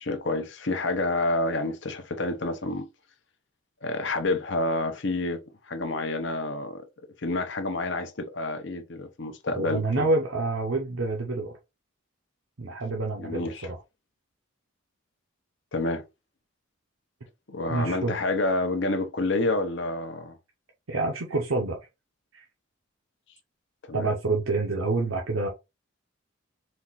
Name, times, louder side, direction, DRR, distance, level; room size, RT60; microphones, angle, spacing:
voice 1, 0.0-2.9 3.8-6.8 7.2-10.1 13.2-13.7 15.7-16.0 17.5-20.4 23.9-24.1, left 2 dB, 55° left, 0.7 m, -28 dB
voice 2, 9.6-11.6 12.6-13.8 17.7-18.1 20.9-21.8 22.3-22.5 23.9-25.5, right 2 dB, 75° right, 0.8 m, -27 dB
4.3 x 2.4 x 3.9 m
head